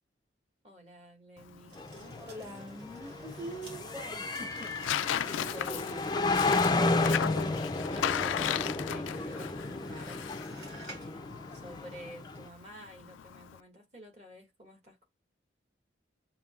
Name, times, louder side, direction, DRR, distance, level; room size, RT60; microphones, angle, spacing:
voice 1, 0.6-2.5 5.5-6.0 7.1-10.5 10.8-15.1, equal, 35° right, 1.7 m, -51 dB
Tearing, 1.4-13.6, left 10 dB, 85° left, 0.3 m, -37 dB
sound 1, 1.7-6.9 9.2-11.2 11.5-11.6, right 2 dB, 65° right, 2.2 m, -52 dB
sound 2, 1.8-12.5, left 3 dB, 20° left, 0.4 m, -32 dB
voice 2, 2.1-6.0 9.6-10.0, equal, 15° right, 1.0 m, -45 dB
6.7 x 2.7 x 2.4 m
head